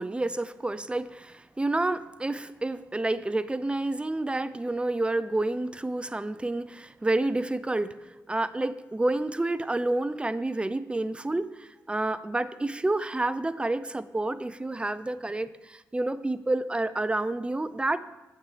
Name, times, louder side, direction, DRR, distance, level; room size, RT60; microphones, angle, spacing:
voice 1, 0.0-18.0, right 2 dB, 15° right, 15 dB, 0.4 m, -29 dB
8.2 x 6.5 x 3.2 m, 1.0 s
cardioid pair, 60°, 7 cm